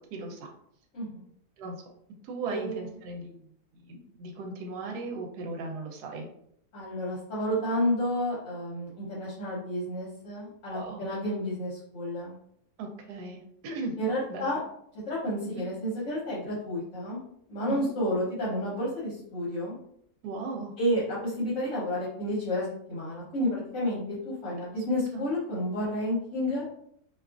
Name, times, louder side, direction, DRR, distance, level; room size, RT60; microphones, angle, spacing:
voice 1, 0.1-0.5 1.6-1.7 2.2-3.5 3.7-6.3 10.7-11.1 12.8-13.9 14.3-14.6 15.4-15.6 17.7-17.9 20.2-20.7 25.1-25.2, right 3 dB, 90° right, 2 dB, 1.2 m, -37 dB
voice 2, 2.5-2.9 6.7-12.3 14.0-14.6 15.1-17.2 17.5-19.7 20.8-26.6, equal, 60° left, -6 dB, 1.1 m, -31 dB
2.7 x 2.3 x 2.3 m, 0.69 s
omnidirectional pair, 1.7 m